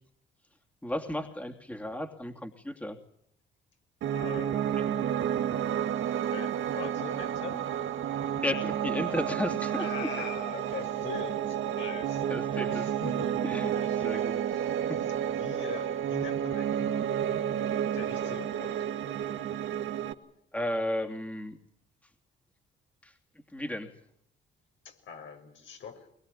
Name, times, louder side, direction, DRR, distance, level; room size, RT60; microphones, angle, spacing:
voice 1, 0.8-3.0 4.8-4.9 8.4-9.9 12.3-14.4 14.9-15.1 20.5-21.6 23.0-23.1 23.5-23.9, left 1 dB, 5° left, 4 dB, 2.9 m, -34 dB
Piano, 4.0-20.1, right 9 dB, 80° right, 1.9 m, -31 dB
voice 2, 4.1-5.0 5.5-7.7 9.8-13.4 13.7-14.7 15.2-17.5 17.9-18.8 24.8-26.1, left 6 dB, 75° left, 4 dB, 6.2 m, -43 dB
22.5 x 22.5 x 10.0 m, 0.70 s
cardioid pair, 90°, 20 cm